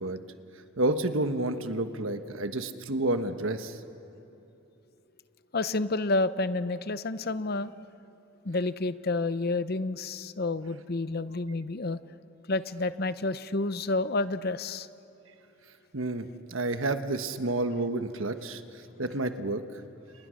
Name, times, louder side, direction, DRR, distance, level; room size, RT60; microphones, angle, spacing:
voice 1, 0.8-3.8 15.9-18.6 19.0-19.6, right 2 dB, 75° right, 8 dB, 1.3 m, -30 dB
voice 2, 5.5-7.7 8.4-12.0 12.5-14.9, left 2 dB, 50° left, 13 dB, 0.8 m, -29 dB
30.0 x 29.5 x 6.5 m, 2.9 s
head